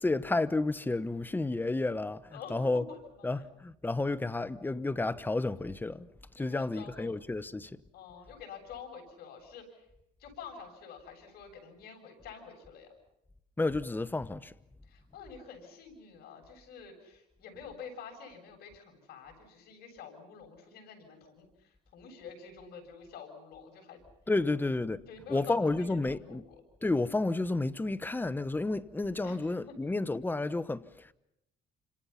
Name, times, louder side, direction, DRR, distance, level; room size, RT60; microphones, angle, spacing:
voice 1, 0.0-2.2 2.5-2.8 3.2-6.1 6.4-7.7 13.6-14.5 24.3-25.0 25.3-26.4 26.8-30.8, left 2 dB, 10° left, 1.0 m, -31 dB
voice 2, 2.9-3.5 6.4-7.1 7.9-9.8 10.2-12.9 14.9-24.0 25.1-26.4 29.2-29.7, left 6 dB, 70° left, 7.7 m, -48 dB
29.0 x 26.5 x 5.8 m
cardioid pair, 110°, 17 cm